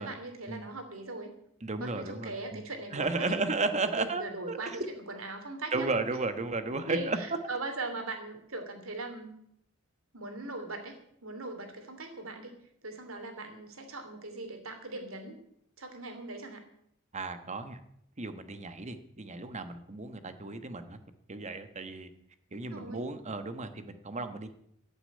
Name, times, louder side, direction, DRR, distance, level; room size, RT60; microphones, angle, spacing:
voice 1, 0.0-1.3 1.8-3.4 4.0-4.8 5.1-5.9 6.8-9.3 10.1-12.5 12.8-15.4 15.8-16.6 20.4-20.5 22.5-23.0, right 2 dB, 75° right, 6 dB, 3.0 m, -40 dB
voice 2, 1.6-2.6 2.9-4.9 5.7-7.2 17.1-17.8 18.2-21.0 21.3-22.1 22.5-24.5, right 3 dB, 35° right, 9 dB, 1.3 m, -34 dB
15.0 x 7.1 x 9.6 m, 0.72 s
head